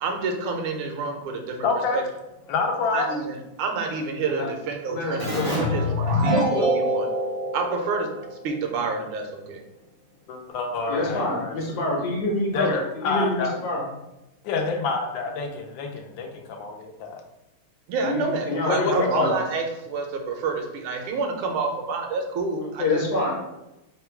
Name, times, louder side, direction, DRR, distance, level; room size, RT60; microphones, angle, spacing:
voice 1, 0.0-1.7 1.9-2.0 2.9-7.1 7.5-9.6 17.9-23.3, right 4 dB, 80° right, 3 dB, 1.5 m, -29 dB
voice 2, 1.6-2.0 2.5-3.2 10.3-11.6 12.5-13.5 14.4-17.2 18.7-19.3, left 4 dB, 75° left, 3 dB, 1.2 m, -27 dB
voice 3, 4.9-5.5 10.9-13.8 18.0-19.4 22.8-23.3, left 2 dB, 55° left, -2 dB, 1.3 m, -27 dB
Keyboard (musical), 5.2-8.6, equal, 50° right, 0.7 m, -24 dB
3.7 x 2.2 x 4.3 m, 0.94 s
omnidirectional pair, 2.3 m